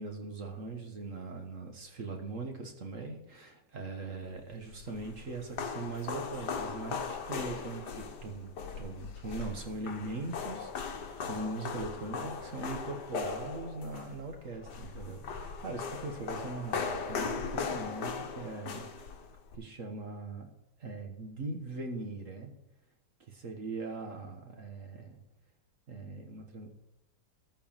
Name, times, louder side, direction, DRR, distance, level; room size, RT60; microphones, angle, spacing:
voice 1, 0.0-18.9 19.5-20.5 20.8-22.5 23.3-25.2 25.9-26.7, right 3 dB, 45° right, 3 dB, 1.5 m, -41 dB
sound 1, 4.5-19.6, left 5 dB, 60° left, 1.6 m, -38 dB
13.5 x 4.6 x 7.3 m, 0.86 s
omnidirectional pair, 2.2 m